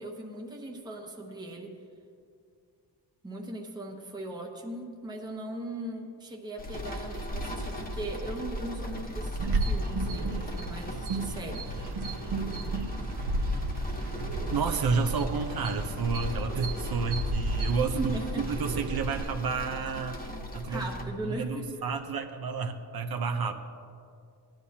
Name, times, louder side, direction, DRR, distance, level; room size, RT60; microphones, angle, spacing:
voice 1, 0.0-1.7 3.2-12.0 18.0-18.4 20.7-21.7, right 1 dB, 10° right, 0 dB, 0.9 m, -39 dB
sound 1, 6.6-21.0, equal, 20° left, 1.1 m, -38 dB
sound 2, 9.4-19.2, right 2 dB, 80° right, 1.1 m, -33 dB
voice 2, 14.5-20.2 20.5-20.9 21.2-23.5, right 5 dB, 60° right, 5 dB, 0.8 m, -30 dB
17.0 x 10.5 x 2.8 m, 2.4 s
wide cardioid pair, 140°, 41 cm